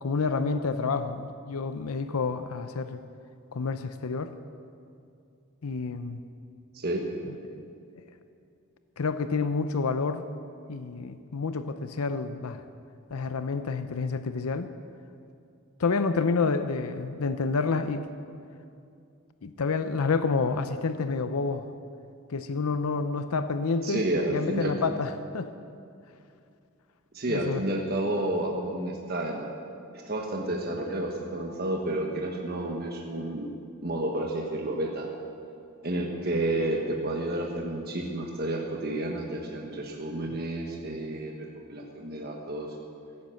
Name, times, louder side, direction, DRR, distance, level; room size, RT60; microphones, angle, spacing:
voice 1, 0.0-3.0 3.5-4.3 5.6-6.2 9.0-10.2 10.7-12.6 13.1-14.7 15.8-18.1 19.4-21.7 22.3-25.5 27.3-27.6, left 4 dB, 90° left, 10 dB, 0.6 m, -29 dB
voice 2, 6.7-7.0 23.8-24.7 27.1-29.5 30.1-33.5 33.8-35.1 35.8-42.7, right 1 dB, 45° right, 0 dB, 1.3 m, -30 dB
16.5 x 9.5 x 7.7 m, 2.5 s
head